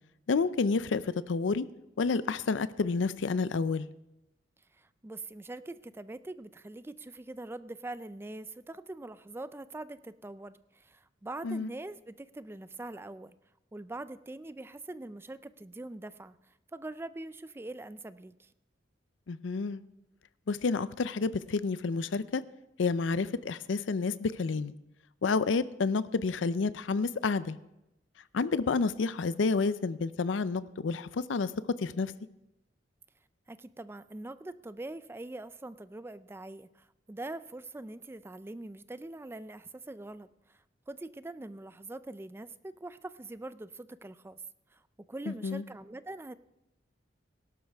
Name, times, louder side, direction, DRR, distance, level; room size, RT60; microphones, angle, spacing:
voice 1, 0.3-1.7 2.0-3.9 11.4-11.7 19.3-19.8 20.5-22.4 22.8-24.7 25.2-27.6 28.3-31.5 31.8-32.1 45.3-45.6, left 4 dB, 90° left, 15 dB, 0.5 m, -29 dB
voice 2, 4.7-13.3 13.7-18.5 33.5-44.4 44.7-44.8 45.1-46.3, right 2 dB, 15° right, 14 dB, 0.4 m, -43 dB
17.0 x 12.0 x 3.5 m, 0.90 s
head